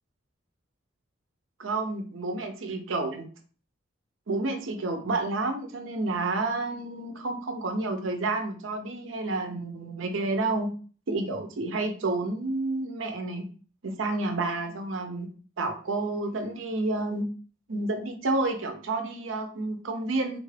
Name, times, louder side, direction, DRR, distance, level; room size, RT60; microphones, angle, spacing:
voice 1, 1.6-3.3 4.3-10.7 11.1-13.5 13.8-15.3 15.6-17.3 17.7-20.4, right 2 dB, 75° right, 6 dB, 0.6 m, -30 dB
3.5 x 2.4 x 3.2 m, 0.40 s
head